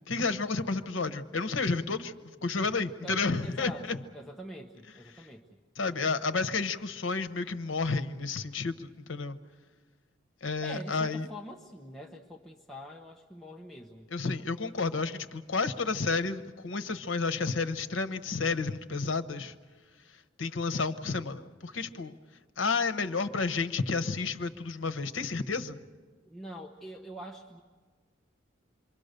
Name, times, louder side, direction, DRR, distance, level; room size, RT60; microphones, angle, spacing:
voice 1, 0.1-2.1 2.4-4.0 5.1-5.2 5.8-9.4 10.4-11.3 14.1-19.5 20.4-22.2 22.6-25.8, left 4 dB, 80° left, 1.0 m, -31 dB
voice 2, 3.0-5.4 10.6-14.1 26.2-27.6, equal, ahead, 1.0 m, -45 dB
27.5 x 23.5 x 6.7 m
head